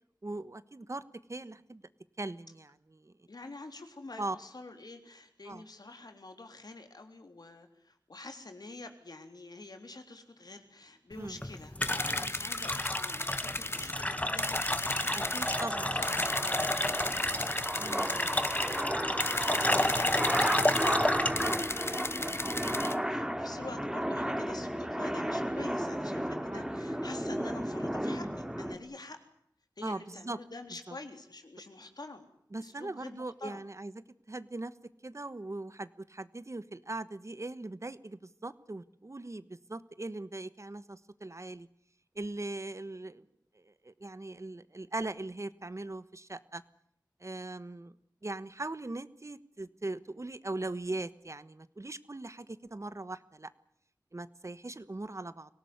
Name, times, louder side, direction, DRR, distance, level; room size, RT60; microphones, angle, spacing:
voice 1, 0.2-1.0 1.3-1.8 2.2-3.1 4.2-4.4 5.5-5.6 11.2-11.4 15.1-15.9 17.8-18.1 26.5-26.7 29.8-30.4 30.9-31.0 32.5-33.9 34.3-34.7 35.0-41.7 42.1-43.3 43.5-46.6 47.2-47.9 48.2-53.5 54.1-55.5, right 2 dB, 45° right, 14 dB, 1.3 m, -40 dB
voice 2, 3.3-17.2 17.7-29.2 29.8-32.3 32.6-33.6, left 2 dB, 70° left, 6 dB, 3.5 m, -47 dB
sound 1, 11.1-22.8, left 1 dB, 20° left, 1.8 m, -32 dB
sound 2, 11.8-13.9 14.4-15.6 16.0-18.8 19.2-21.0 21.4-23.0, left 2 dB, 35° left, 1.1 m, -35 dB
sound 3, 13.4-28.8, equal, 5° right, 2.7 m, -34 dB
24.5 x 18.0 x 9.6 m, 0.71 s
wide cardioid pair, 60°, 7 cm